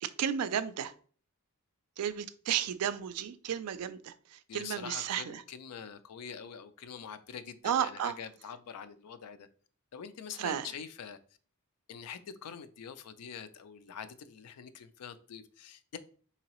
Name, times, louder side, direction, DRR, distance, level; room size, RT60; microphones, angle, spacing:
voice 1, 0.0-0.9 2.0-5.4 7.6-8.1 10.4-10.7, right 9 dB, 85° right, 0.4 m, -33 dB
voice 2, 4.5-9.5 9.9-11.2 11.9-16.0, left 7 dB, 90° left, 0.4 m, -45 dB
3.8 x 2.8 x 2.9 m
head